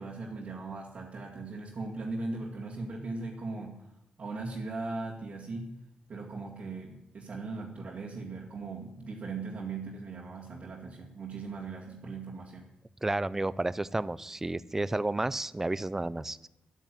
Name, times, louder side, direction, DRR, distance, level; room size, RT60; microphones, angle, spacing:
voice 1, 0.0-3.9 4.2-5.7 6.1-12.7, right 3 dB, 45° right, -4 dB, 2.2 m, -39 dB
voice 2, 13.0-16.5, right 2 dB, 10° right, 17 dB, 0.5 m, -31 dB
12.5 x 9.1 x 9.2 m, 0.85 s
wide cardioid pair, 160°, 3 cm